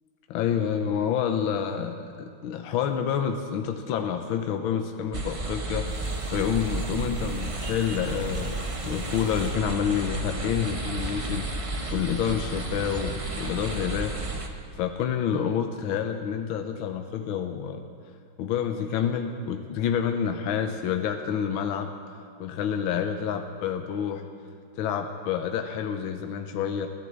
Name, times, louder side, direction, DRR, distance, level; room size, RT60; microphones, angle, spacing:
voice 1, 0.3-5.9 6.3-8.6 8.8-14.1 14.7-17.8 18.4-21.9 22.4-24.2 24.8-26.9, left 8 dB, 75° left, 5 dB, 1.5 m, -28 dB
sound 1, 5.1-14.5, right 2 dB, 50° right, 0.3 m, -32 dB
sound 2, 5.9-9.6 10.2-10.7 11.9-12.0, right 1 dB, 25° right, 2.1 m, -55 dB
sound 3, 9.2-9.9 11.0-11.8 12.8-13.3 13.7-14.2 15.0-15.1, left 2 dB, 40° left, 3.4 m, -53 dB
15.0 x 11.5 x 7.5 m, 2.2 s
omnidirectional pair, 2.4 m